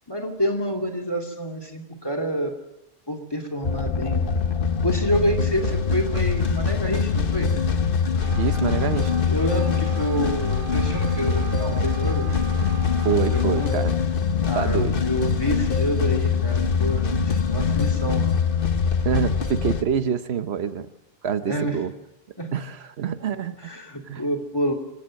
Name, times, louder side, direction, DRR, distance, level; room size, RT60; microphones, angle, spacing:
voice 1, 0.1-2.5 3.1-4.3 4.8-7.5 9.3-12.3 13.2-13.8 14.4-18.2 21.5-21.8 22.4-22.5 23.6-24.7, equal, 25° left, 6 dB, 2.7 m, -28 dB
sound 1, 3.6-19.8, left 6 dB, 60° left, 1.3 m, -23 dB
Wind instrument woodwind instrument, 8.1-13.8, right 4 dB, 35° right, 2.9 m, -39 dB
voice 2, 8.4-9.1 13.0-14.0 14.6-14.9 19.0-20.9 21.2-21.9 22.5-23.5 24.1-24.2, right 7 dB, 90° right, 11 dB, 1.2 m, -26 dB
25.5 x 16.5 x 6.5 m, 0.89 s
omnidirectional pair, 1.0 m